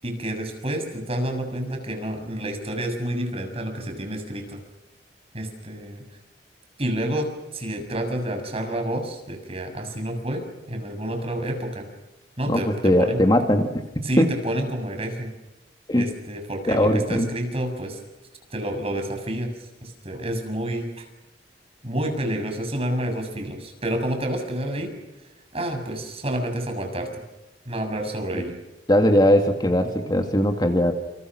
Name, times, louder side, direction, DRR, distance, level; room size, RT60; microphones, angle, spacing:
voice 1, 0.0-4.6 5.3-6.0 6.8-11.9 12.4-13.2 14.0-15.3 15.9-18.0 18.5-21.0 21.8-24.9 25.5-27.2 27.6-28.6, right 1 dB, 35° right, 5 dB, 6.9 m, -29 dB
voice 2, 12.5-13.8 14.2-14.3 15.9-16.1 16.7-17.3 28.3-28.4 28.9-30.9, equal, 25° left, 5 dB, 2.3 m, -19 dB
29.0 x 28.5 x 6.2 m, 1.0 s
head